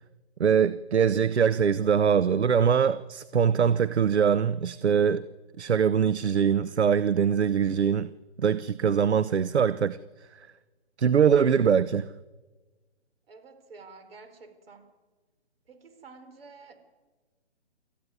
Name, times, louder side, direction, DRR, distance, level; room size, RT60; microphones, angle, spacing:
voice 1, 0.4-5.2 5.6-8.1 8.4-10.0 10.4-10.5 11.0-12.1, right 7 dB, 75° right, 0.8 m, -23 dB
voice 2, 13.3-14.9 15.7-16.7, right 4 dB, 60° right, 4.7 m, -50 dB
26.5 x 14.5 x 9.6 m
figure-of-eight pair, 145°, 33 cm